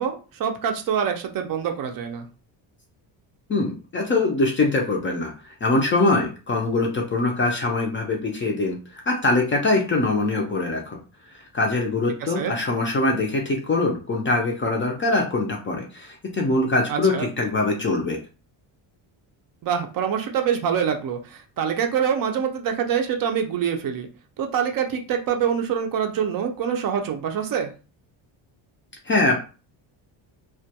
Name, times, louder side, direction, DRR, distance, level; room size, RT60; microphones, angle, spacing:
voice 1, 0.0-2.3 12.2-12.6 16.9-17.3 19.6-24.1 24.4-27.7, right 8 dB, 45° right, 5 dB, 0.4 m, -25 dB
voice 2, 3.5-5.3 5.6-11.0 11.5-18.2 29.1-29.4, left 2 dB, 30° left, 1 dB, 0.4 m, -23 dB
2.2 x 2.2 x 2.7 m, 0.34 s
cardioid pair, 145°, 48 cm